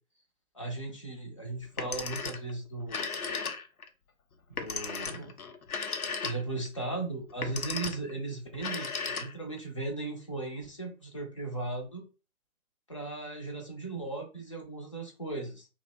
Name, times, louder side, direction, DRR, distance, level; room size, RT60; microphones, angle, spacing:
voice 1, 0.5-3.5 4.5-5.3 6.2-12.0 12.9-15.7, right 2 dB, 25° left, 1 dB, 0.4 m, -37 dB
Telephone, 1.6-2.5 2.8-3.9 4.6-6.7 7.3-8.1 8.5-9.6, left 5 dB, 85° left, 0.7 m, -35 dB
2.6 x 2.1 x 3.5 m, 0.32 s
figure-of-eight pair, 140°, 42 cm